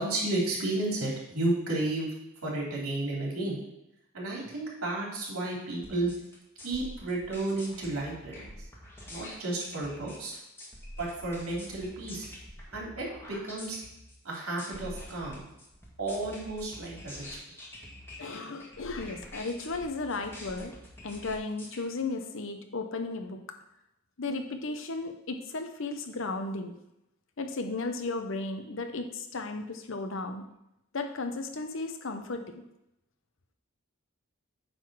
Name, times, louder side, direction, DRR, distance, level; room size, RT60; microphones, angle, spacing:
voice 1, 0.0-2.1 2.4-3.6 4.1-6.1 6.6-8.7 9.1-10.3 11.0-12.3 12.7-13.8 14.2-15.4 16.0-17.4, right 2 dB, 90° right, -3 dB, 3.2 m, -32 dB
sound 1, 5.8-21.8, left 1 dB, 10° left, 1.7 m, -46 dB
voice 2, 18.2-20.7 21.0-23.4 24.2-26.8 27.4-30.5 30.9-32.6, left 3 dB, 65° left, 6 dB, 0.9 m, -35 dB
8.9 x 3.9 x 6.2 m, 0.83 s
head